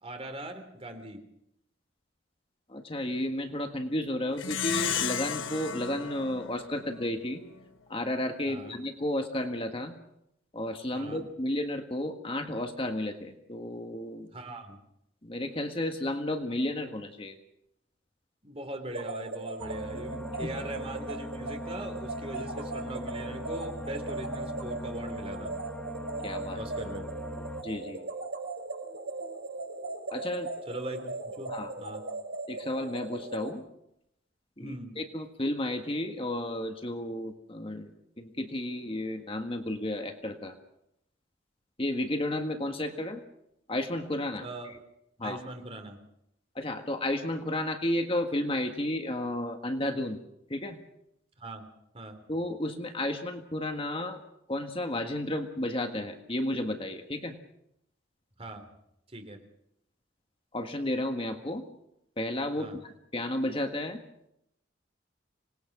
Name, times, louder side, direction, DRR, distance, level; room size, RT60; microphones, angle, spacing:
voice 1, 0.0-1.3 8.5-8.8 10.9-11.2 14.3-14.8 18.4-25.6 26.5-27.1 30.7-32.0 34.6-35.0 44.4-44.7 45.2-46.0 51.4-51.7 51.9-52.2 58.4-58.7 59.1-59.4 62.6-62.8, right 1 dB, 30° right, 6 dB, 3.1 m, -41 dB
voice 2, 2.7-7.4 7.9-10.0 10.5-14.3 15.2-17.4 19.9-20.0 20.4-20.5 22.3-22.4 26.2-26.6 27.6-28.1 30.1-30.5 31.5-31.7 32.5-33.6 34.6-40.5 41.8-43.2 43.7-44.5 45.2-45.4 46.5-50.2 50.5-50.8 52.3-54.2 54.5-57.4 60.5-61.6 62.2-64.0, left 1 dB, 25° left, 5 dB, 1.6 m, -32 dB
Plucked string instrument, 4.4-7.2, left 8 dB, 75° left, 1.2 m, -33 dB
sound 1, 18.9-33.5, right 3 dB, 65° right, 5.3 m, -38 dB
sound 2, 19.6-27.6, left 1 dB, 5° left, 1.2 m, -41 dB
26.0 x 19.5 x 6.1 m, 0.78 s
head